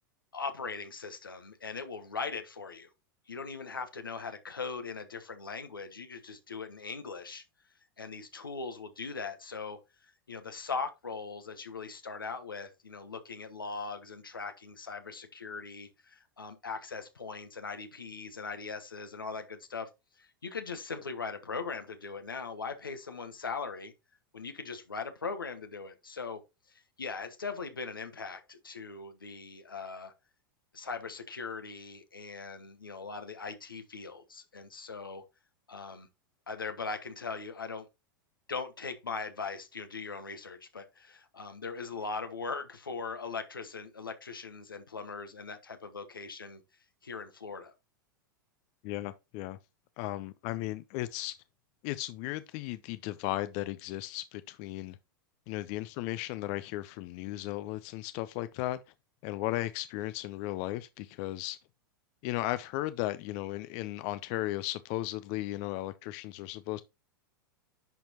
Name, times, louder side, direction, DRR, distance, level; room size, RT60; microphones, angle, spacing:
voice 1, 0.3-2.9 3.3-7.4 8.0-19.9 20.2-23.9 24.3-26.4 26.7-30.1 30.7-35.2 35.7-36.1 36.5-37.9 38.5-46.6 47.0-47.7, left 4 dB, 90° left, 1.2 m, -40 dB
voice 2, 48.8-49.6 50.0-51.4 51.8-55.0 55.5-58.8 59.2-61.6 62.2-66.8, left 16 dB, 50° left, 0.5 m, -35 dB
10.5 x 4.4 x 2.9 m
hypercardioid pair, 95°, 11 cm